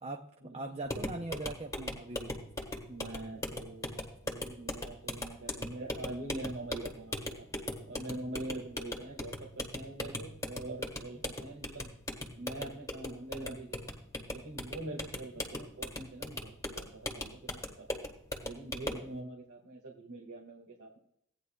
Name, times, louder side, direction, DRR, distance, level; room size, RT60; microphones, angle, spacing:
voice 1, 0.0-2.4, right 2 dB, 30° right, 4 dB, 0.6 m, -41 dB
sound 1, 0.8-19.1, left 1 dB, 15° left, 1.5 m, -40 dB
voice 2, 2.9-7.5 7.9-11.9 12.3-14.0 14.3-18.0 18.4-21.0, right 2 dB, 85° right, -2 dB, 1.9 m, -44 dB
16.5 x 9.6 x 2.3 m, 0.71 s
head